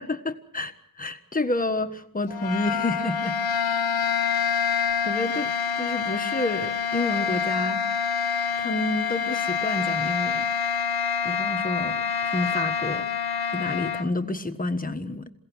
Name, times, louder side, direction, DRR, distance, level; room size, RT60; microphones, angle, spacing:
voice 1, 0.0-3.4 5.0-7.8 8.6-10.5 11.2-13.1 13.5-15.3, left 2 dB, 25° left, 7 dB, 1.4 m, -29 dB
sound 1, 2.3-14.1, left 7 dB, 85° left, 1.4 m, -26 dB
28.0 x 17.0 x 6.3 m, 0.73 s
wide cardioid pair, 100°, 37 cm